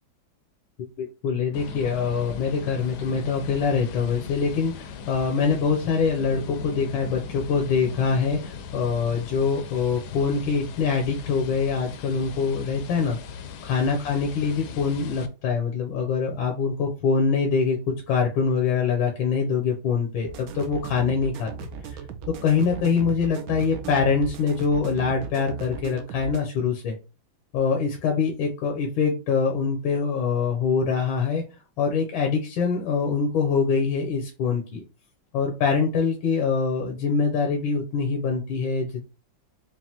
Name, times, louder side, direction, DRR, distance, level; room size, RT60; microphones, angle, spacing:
voice 1, 1.0-13.2 13.6-21.5 21.8-22.0 22.3-27.0 27.5-31.4 31.8-34.8 35.3-39.0, left 5 dB, 90° left, 1 dB, 1.6 m, -24 dB
sound 1, 1.5-15.3, left 6 dB, 70° left, 1.0 m, -39 dB
sound 2, 20.3-26.4, right 6 dB, 75° right, 0.8 m, -37 dB
5.3 x 2.5 x 2.8 m, 0.31 s
omnidirectional pair, 2.1 m